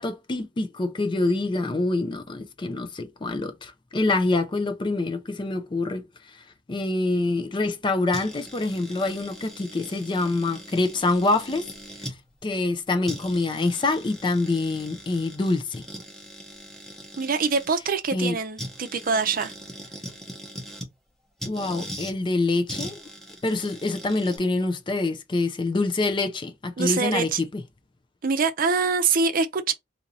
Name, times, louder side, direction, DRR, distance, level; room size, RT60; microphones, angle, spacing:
voice 1, 0.0-6.1 6.3-6.4 6.7-11.7 12.4-15.8 18.1-18.4 21.5-23.0 23.4-27.6, left 2 dB, 25° left, 0.4 m, -26 dB
sound 1, 8.1-12.2 12.7-12.8 13.1-17.7 18.6-20.9 21.4-22.1 22.7-24.4, equal, ahead, 0.9 m, -40 dB
voice 2, 17.2-19.5 26.8-27.4 28.2-29.7, right 5 dB, 50° right, 0.5 m, -24 dB
2.8 x 2.7 x 4.0 m
head